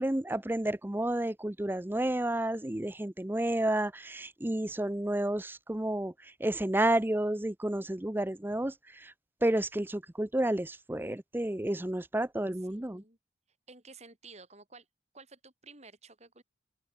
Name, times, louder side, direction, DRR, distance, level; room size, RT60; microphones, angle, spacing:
voice 1, 0.0-6.1 6.4-8.7 9.0-9.1 9.4-13.0, right 1 dB, 10° right, 0.6 m, -31 dB
voice 2, 12.5-13.2 13.7-14.9 15.1-16.4, right 3 dB, 35° right, 6.5 m, -53 dB
open air
head